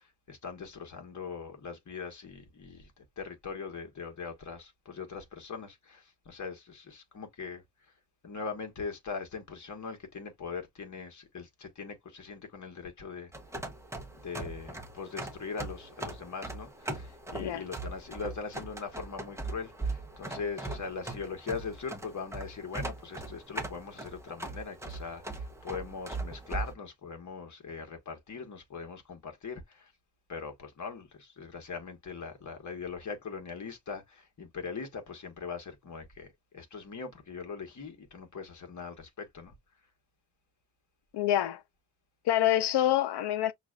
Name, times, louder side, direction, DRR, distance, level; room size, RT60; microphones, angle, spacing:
voice 1, 0.0-7.6 8.2-13.3 14.1-29.9 30.3-36.3 36.5-39.5, left 5 dB, 45° left, 1.4 m, -41 dB
sound 1, 13.3-26.7, right 2 dB, 5° right, 0.7 m, -40 dB
voice 2, 41.1-41.6 42.2-43.5, left 12 dB, 70° left, 0.6 m, -26 dB
5.8 x 2.5 x 2.3 m
wide cardioid pair, 130°, 42 cm